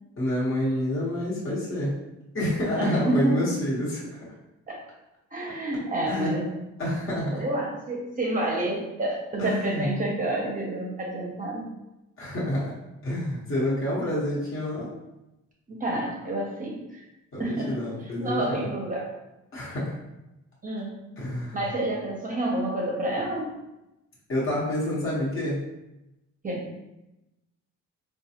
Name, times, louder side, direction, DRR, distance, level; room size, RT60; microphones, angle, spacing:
voice 1, 0.2-1.9 2.3-4.2 6.1-6.3 6.8-7.4 9.4-10.0 12.2-12.7 13.0-14.9 17.3-18.7 19.5-20.0 21.2-21.7 24.3-25.6, left 1 dB, 45° left, -7 dB, 1.2 m, -28 dB
voice 2, 2.7-3.5 4.7-4.8 5.3-6.5 7.3-11.7 15.7-17.1 17.4-17.8 18.2-19.1 20.6-21.0 21.5-23.6 26.4-26.7, right 1 dB, 25° right, -2 dB, 0.7 m, -29 dB
3.9 x 2.2 x 2.8 m, 0.94 s
cardioid pair, 90°, 30 cm